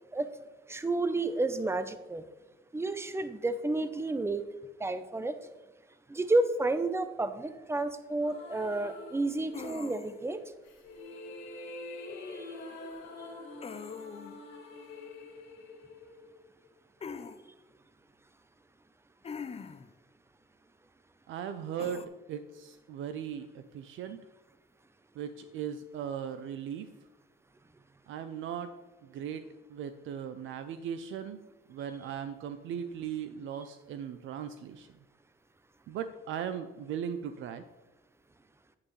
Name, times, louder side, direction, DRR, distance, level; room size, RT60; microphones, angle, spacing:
voice 1, 0.7-2.2 2.7-4.4 4.8-5.4 6.1-10.4 12.3-12.5, right 2 dB, 15° right, 11 dB, 0.6 m, -31 dB
sound 1, 8.2-9.9 10.6-16.7, left 2 dB, 90° left, 2.0 m, -46 dB
sound 2, 9.5-10.3 13.6-14.4 17.0-17.4 19.2-19.9 21.8-22.1, left 6 dB, 30° left, 0.6 m, -42 dB
voice 2, 21.3-24.2 25.2-26.9 28.1-28.7 29.0-29.4 29.7-31.4 31.7-34.9 35.9-37.6, right 8 dB, 80° right, 10 dB, 0.5 m, -38 dB
8.6 x 8.6 x 3.2 m, 1.1 s
cardioid pair, 90°, 20 cm